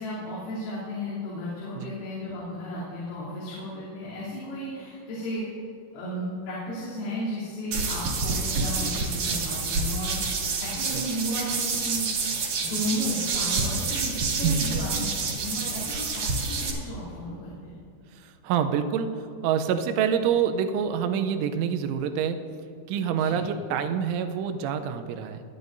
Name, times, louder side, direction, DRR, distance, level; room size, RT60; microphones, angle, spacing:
voice 1, 0.0-5.5 5.9-12.1 12.6-17.8 23.2-23.4, equal, 80° left, -10 dB, 5.8 m, -34 dB
sound 1, 7.7-16.7, right 4 dB, 55° right, 2.6 m, -28 dB
voice 2, 18.2-19.2 19.4-22.4 22.9-25.4, right 8 dB, 80° right, 7 dB, 3.0 m, -26 dB
24.0 x 11.0 x 2.6 m, 2.6 s
omnidirectional pair, 5.9 m